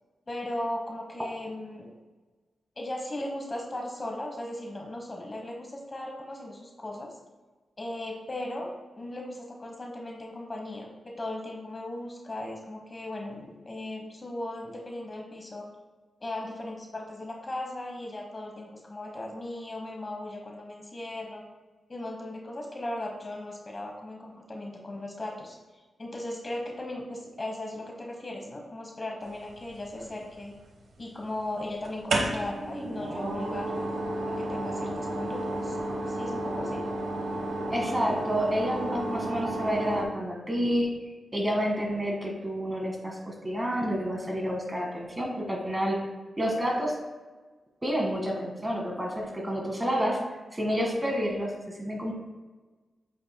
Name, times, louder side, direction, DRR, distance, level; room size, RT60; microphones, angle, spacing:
voice 1, 0.3-1.9 2.8-7.1 7.8-15.7 16.2-21.4 21.9-30.6 31.0-33.9 34.3-35.8 36.1-36.8 49.9-50.2, left 1 dB, 30° left, 1 dB, 1.1 m, -37 dB
sound 1, 29.7-30.4 31.8-40.0, right 1 dB, 80° right, 1.1 m, -32 dB
voice 2, 37.7-40.9 41.3-46.0 46.4-47.0 47.8-50.2 50.5-52.1, equal, 20° right, 0 dB, 1.8 m, -29 dB
8.1 x 5.8 x 2.2 m, 1.3 s
cardioid pair, 80°, 0 cm